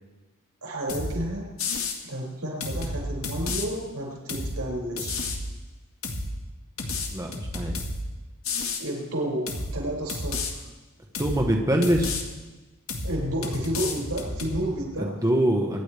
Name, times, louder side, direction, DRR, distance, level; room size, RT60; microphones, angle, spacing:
voice 1, 0.6-1.5 2.0-5.3 8.8-9.5 9.7-10.6 13.0-15.2, right 1 dB, 85° right, -2 dB, 6.0 m, -31 dB
sound 1, 0.9-1.2 1.6-2.0 2.6-3.7 4.3-4.6 5.0-5.4 6.0-6.3 6.8-8.0 8.4-8.8 9.5-9.7 10.1-10.5 11.1-11.4 11.8-12.2 12.9-13.2 13.4-14.6, left 3 dB, 65° left, 1.8 m, -31 dB
voice 2, 7.1-7.8 11.2-12.2 15.0-15.8, right 1 dB, 15° right, 0 dB, 1.2 m, -24 dB
24.5 x 10.5 x 3.4 m, 1.2 s
head